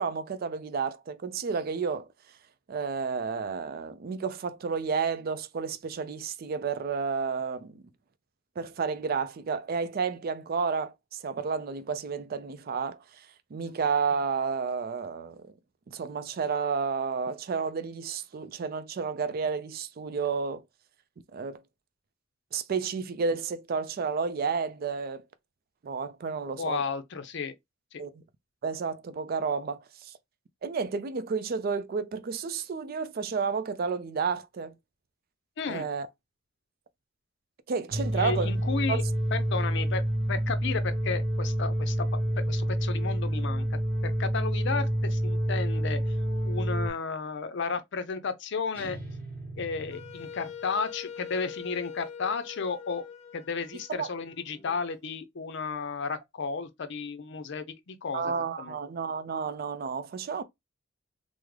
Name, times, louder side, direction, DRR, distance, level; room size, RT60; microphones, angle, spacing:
voice 1, 0.0-2.1 2.7-7.8 8.6-15.5 15.9-20.6 21.3-21.6 22.5-25.2 25.8-26.8 28.0-28.2 28.6-30.1 30.6-34.7 35.7-36.1 37.7-38.5 38.9-39.0 53.9-54.1 58.1-60.4, right 5 dB, 50° right, 0.4 m, -31 dB
voice 2, 26.6-27.5 27.9-28.0 35.6-35.9 38.0-39.0 39.3-42.1 42.4-43.6 44.0-46.2 46.4-49.0 49.6-53.0 53.3-58.3 58.6-58.7, left 5 dB, 65° left, 0.5 m, -33 dB
sound 1, 37.9-46.9, equal, 70° right, 0.8 m, -28 dB
sound 2, 48.7-50.8, right 1 dB, 10° left, 1.8 m, -43 dB
Wind instrument woodwind instrument, 49.9-54.8, left 7 dB, 35° left, 1.0 m, -43 dB
3.5 x 2.0 x 3.2 m
head